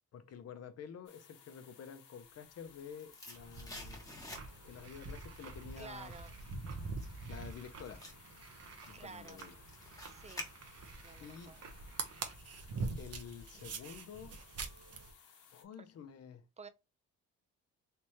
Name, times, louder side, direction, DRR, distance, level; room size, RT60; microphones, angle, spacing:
voice 1, 0.1-4.0 4.6-6.1 7.3-8.0 8.8-9.5 11.2-11.6 13.0-14.4 15.5-16.4, left 7 dB, 55° left, 0.7 m, -50 dB
sound 1, 1.1-15.6, left 7 dB, 85° left, 0.9 m, -61 dB
sound 2, 2.7-4.8 5.2-11.1 11.4-11.5, left 1 dB, 10° left, 1.0 m, -51 dB
sound 3, 3.3-15.1, right 4 dB, 55° right, 0.9 m, -45 dB
voice 2, 5.8-6.3 8.9-9.4 10.1-10.5 11.0-11.6 15.8-15.9 16.6-16.7, right 4 dB, 20° right, 0.6 m, -50 dB
3.4 x 3.0 x 2.9 m
cardioid pair, 90°, 30 cm